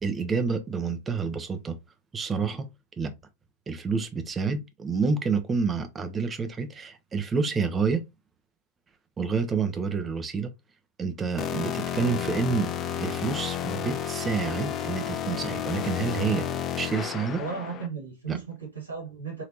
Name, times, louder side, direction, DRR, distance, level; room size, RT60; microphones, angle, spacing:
voice 1, 0.0-1.8 2.1-2.7 3.0-3.1 3.7-8.0 9.2-10.5 11.0-12.7 13.0-16.5 16.8-17.4 18.3-18.4, right 5 dB, 20° right, 0.6 m, -28 dB
sound 1, 11.4-17.9, left 9 dB, 30° left, 0.4 m, -31 dB
voice 2, 17.4-19.4, right 5 dB, 75° right, 1.7 m, -35 dB
3.4 x 2.8 x 2.8 m
figure-of-eight pair, 90°, 0 cm